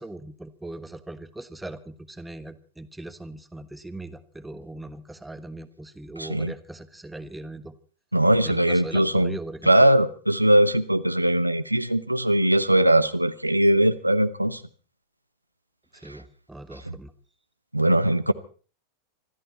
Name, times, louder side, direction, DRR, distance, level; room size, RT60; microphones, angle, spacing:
voice 1, 0.0-7.7 8.4-9.7 16.0-17.1, right 2 dB, 5° right, 11 dB, 1.3 m, -39 dB
voice 2, 6.2-6.5 8.1-9.4 9.7-14.6 17.7-18.3, right 1 dB, 85° right, 12 dB, 0.8 m, -20 dB
25.5 x 13.0 x 4.3 m, 0.40 s
figure-of-eight pair, 90°, 0 cm